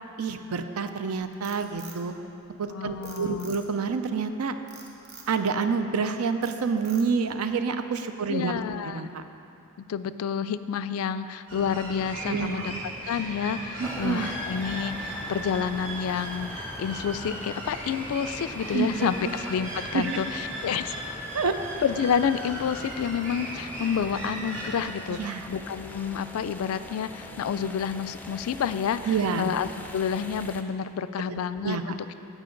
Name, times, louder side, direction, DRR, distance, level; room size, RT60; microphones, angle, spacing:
voice 1, 0.2-2.1 2.6-4.5 5.3-9.2 12.3-12.8 13.8-14.3 18.7-19.1 19.9-20.2 21.3-21.5 25.1-25.5 29.0-29.5 31.6-32.0, right 5 dB, 85° right, 8 dB, 0.5 m, -28 dB
Frog, 1.2-2.6 3.0-3.9 4.7-5.3 5.8-6.1 6.4-7.3, right 4 dB, 50° right, 1.0 m, -47 dB
voice 2, 2.7-3.5 8.3-9.0 9.9-12.7 13.1-21.0 21.8-32.0, left 7 dB, 80° left, 13 dB, 0.3 m, -29 dB
sound 1, 11.5-24.8, right 1 dB, 65° right, 2.2 m, -37 dB
sound 2, 13.8-30.6, left 1 dB, 10° left, 0.4 m, -43 dB
15.5 x 5.1 x 3.8 m, 2.8 s
head